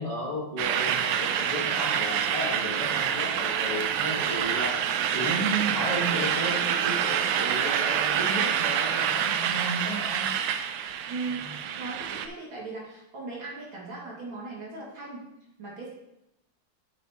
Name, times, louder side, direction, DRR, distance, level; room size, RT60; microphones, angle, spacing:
voice 1, 0.0-4.7 5.1-10.3 11.4-11.6, equal, 20° left, -4 dB, 1.5 m, -33 dB
sound 1, 0.6-12.3, right 9 dB, 85° right, 1.5 m, -27 dB
voice 2, 11.1-15.3 15.6-15.9, right 3 dB, 65° right, -5 dB, 3.0 m, -38 dB
8.9 x 7.8 x 3.0 m, 0.86 s
omnidirectional pair, 2.4 m